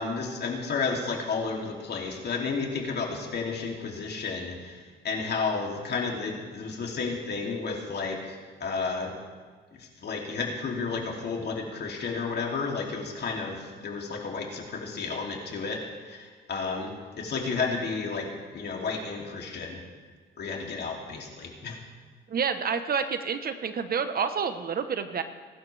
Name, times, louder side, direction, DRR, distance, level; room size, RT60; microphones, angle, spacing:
voice 1, 0.0-9.1 9.8-15.8 16.0-19.8 20.4-21.8, left 4 dB, 55° left, 0 dB, 2.8 m, -32 dB
voice 2, 22.3-25.2, right 6 dB, 50° right, 9 dB, 1.0 m, -29 dB
21.5 x 12.0 x 3.4 m, 1.5 s
cardioid pair, 90°, 20 cm